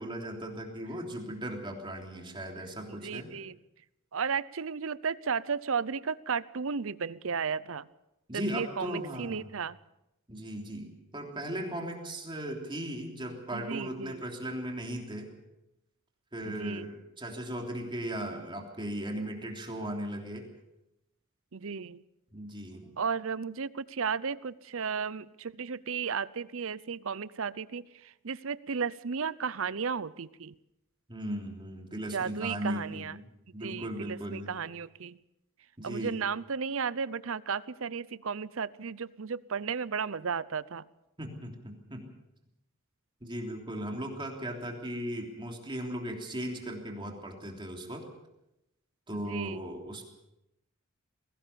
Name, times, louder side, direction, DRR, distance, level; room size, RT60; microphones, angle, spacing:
voice 1, 0.0-3.3 8.3-9.5 10.3-15.3 16.3-20.5 22.3-22.9 31.1-33.3 33.5-34.5 35.8-36.1 41.2-42.0 43.2-48.0 49.1-50.0, right 1 dB, 25° right, 2 dB, 3.2 m, -37 dB
voice 2, 2.9-3.6 4.1-7.9 8.3-9.8 13.5-14.2 16.5-16.9 21.5-22.0 23.0-30.5 32.1-33.1 33.6-35.2 35.8-40.8 49.1-49.7, right 6 dB, 65° right, 18 dB, 0.7 m, -34 dB
21.0 x 18.0 x 7.0 m, 0.87 s
head